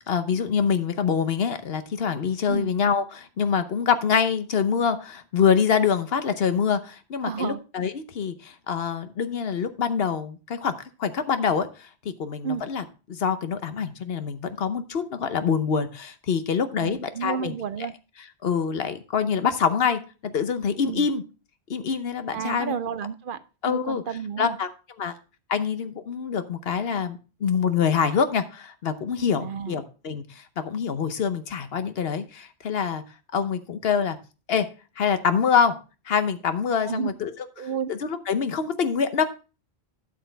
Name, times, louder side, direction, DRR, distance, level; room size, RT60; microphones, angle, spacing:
voice 1, 0.1-17.5 18.4-21.2 21.7-22.7 23.6-24.0 24.4-24.7 25.0-25.1 25.5-33.0 33.3-34.2 34.5-34.7 35.0-35.8 36.1-37.3 37.9-39.2, left 6 dB, 70° left, 10 dB, 1.1 m, -25 dB
voice 2, 7.2-7.6 12.4-12.6 16.8-17.9 20.9-21.1 22.3-24.6 29.4-29.8 36.8-37.1 37.6-37.9, right 7 dB, 60° right, 13 dB, 0.7 m, -31 dB
12.5 x 6.6 x 3.3 m, 0.33 s
omnidirectional pair, 1.1 m